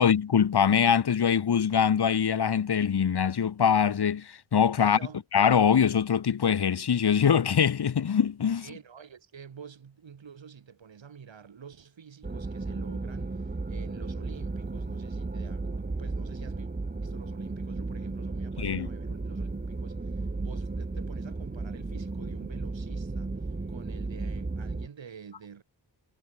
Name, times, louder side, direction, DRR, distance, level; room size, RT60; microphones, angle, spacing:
voice 1, 0.0-5.0 5.3-8.7 18.6-18.9, left 7 dB, 60° left, 1.4 m, -23 dB
voice 2, 4.8-5.2 8.6-16.7 17.0-23.3 23.7-25.6, right 7 dB, 85° right, 5.8 m, -48 dB
sound 1, 12.2-24.9, right 3 dB, 20° right, 1.7 m, -34 dB
wide cardioid pair, 140°, 44 cm